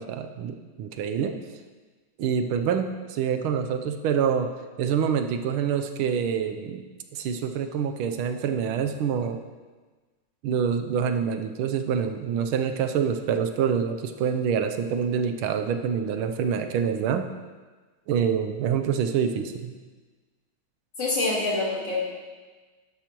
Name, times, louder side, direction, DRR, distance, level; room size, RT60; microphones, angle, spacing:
voice 1, 0.0-1.4 2.2-4.5 4.8-6.8 7.1-9.4 10.4-17.3 18.1-19.7, right 7 dB, 80° right, 7 dB, 1.5 m, -26 dB
voice 2, 21.0-22.0, left 2 dB, 55° left, -7 dB, 3.7 m, -25 dB
11.5 x 11.0 x 3.0 m, 1.3 s
omnidirectional pair, 2.3 m